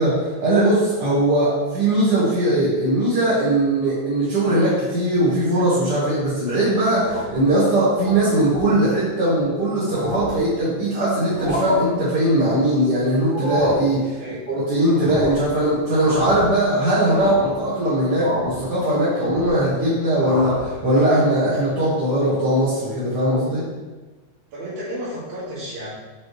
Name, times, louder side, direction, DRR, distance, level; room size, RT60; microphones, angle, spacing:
voice 1, 0.0-14.2 14.5-23.6, right 1 dB, 40° right, -10 dB, 1.8 m, -20 dB
sound 1, 6.9-7.5 7.9-8.1 8.5-8.7 9.4-9.5 9.8-10.5 11.2-11.8 13.2-13.9 14.9-15.5 15.9-16.6 17.0-17.6 18.2-18.6 19.0-19.7 20.1-20.7, equal, 60° right, 0.5 m, -28 dB
voice 2, 14.2-14.5 24.5-25.9, equal, 80° right, -9 dB, 3.7 m, -32 dB
6.2 x 5.5 x 3.2 m, 1.2 s
omnidirectional pair, 3.4 m